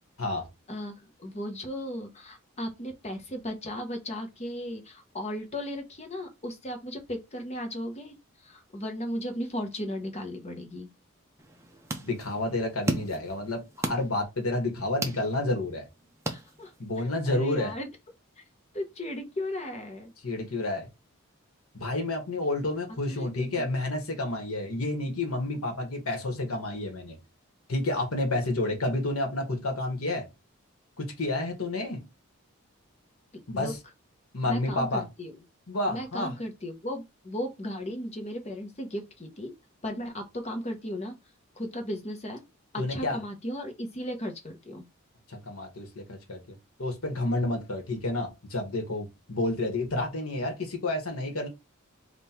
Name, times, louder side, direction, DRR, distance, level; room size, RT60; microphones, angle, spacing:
voice 1, 0.7-10.9 16.3-16.7 17.0-17.9 18.7-20.1 23.1-23.7 33.5-33.7 34.4-35.3 35.9-39.5 39.8-41.2 41.6-42.4 42.7-44.9, left 1 dB, 30° left, 0.9 m, -36 dB
sound 1, 11.4-17.0, right 1 dB, 15° right, 0.6 m, -36 dB
voice 2, 12.0-15.9 16.8-17.7 20.2-20.9 21.7-27.2 27.7-30.3 31.0-32.0 33.5-33.8 34.3-35.0 35.7-36.3 42.8-43.2 45.3-46.4 46.8-51.5, left 2 dB, 90° left, 1.3 m, -30 dB
3.6 x 2.5 x 4.3 m
head